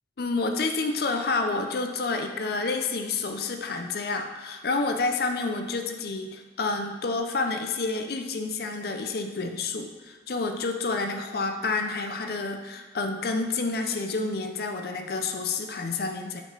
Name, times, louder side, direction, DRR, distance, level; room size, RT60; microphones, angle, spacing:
voice 1, 0.2-16.4, left 3 dB, 55° left, 5 dB, 0.5 m, -29 dB
6.9 x 6.0 x 3.3 m, 1.3 s
head